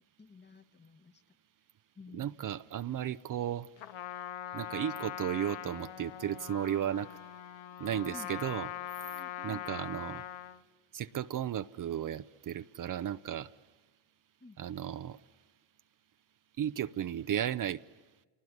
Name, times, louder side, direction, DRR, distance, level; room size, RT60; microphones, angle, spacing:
voice 1, 0.2-1.4 1.9-2.3 7.9-8.3 9.0-9.6 14.4-14.6, left 2 dB, 25° left, 11 dB, 1.4 m, -52 dB
voice 2, 2.1-3.7 4.5-7.1 7.8-8.7 9.4-10.2 10.9-13.5 14.6-15.2 16.6-17.8, right 10 dB, 45° right, 12 dB, 0.8 m, -34 dB
Trumpet, 3.8-10.6, left 11 dB, 75° left, 1.1 m, -42 dB
28.5 x 20.0 x 9.4 m, 1.3 s
supercardioid pair, 70°, 46 cm